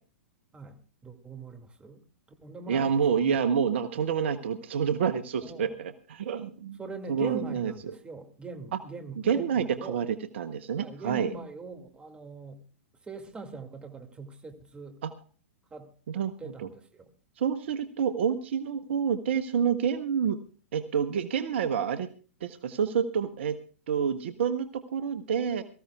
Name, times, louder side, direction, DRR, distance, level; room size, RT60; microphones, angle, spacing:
voice 1, 0.5-2.0 2.4-3.4 5.4-5.7 6.8-10.0 10.8-12.6 13.0-15.0 15.7-15.9 16.4-17.1, right 3 dB, 15° right, 5 dB, 2.3 m, -42 dB
voice 2, 2.7-6.8 7.1-7.7 9.2-11.3 15.0-15.1 16.1-16.7 17.4-20.4 20.7-22.1 22.4-23.6 23.9-25.6, right 7 dB, 60° right, 11 dB, 0.9 m, -28 dB
23.5 x 14.5 x 2.3 m, 0.39 s
figure-of-eight pair, 110°, 7 cm